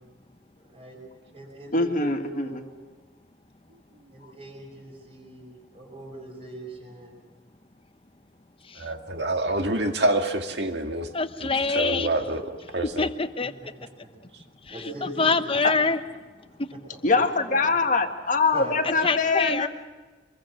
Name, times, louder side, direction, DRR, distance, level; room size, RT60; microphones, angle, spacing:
voice 1, 0.6-1.0 1.3-2.8 4.1-7.2 14.0-14.1 14.7-15.5 16.9-17.6 18.5-18.8, right 2 dB, 35° right, 1 dB, 6.4 m, -41 dB
voice 2, 1.7-2.6 15.6-15.7 17.0-19.7, left 3 dB, 45° left, 5 dB, 1.7 m, -23 dB
voice 3, 8.8-11.1 11.8-13.1, right 2 dB, 65° right, 5 dB, 2.1 m, -27 dB
voice 4, 11.1-12.1 13.0-13.5 14.6-16.0 16.6-16.7 18.8-19.7, left 4 dB, 30° left, 10 dB, 0.9 m, -25 dB
25.5 x 22.0 x 6.5 m, 1.3 s
head